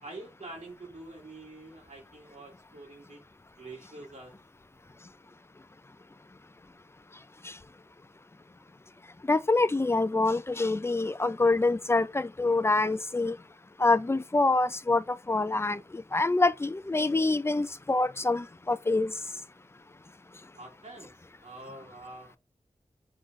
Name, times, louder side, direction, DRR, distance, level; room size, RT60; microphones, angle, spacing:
voice 1, 0.0-3.2 3.6-4.4 20.5-21.1 21.4-22.4, right 2 dB, 70° right, 2.2 m, -46 dB
voice 2, 9.3-13.4 13.8-19.1, left 3 dB, 20° left, 0.4 m, -26 dB
3.9 x 3.9 x 3.1 m
wide cardioid pair, 75°, 13 cm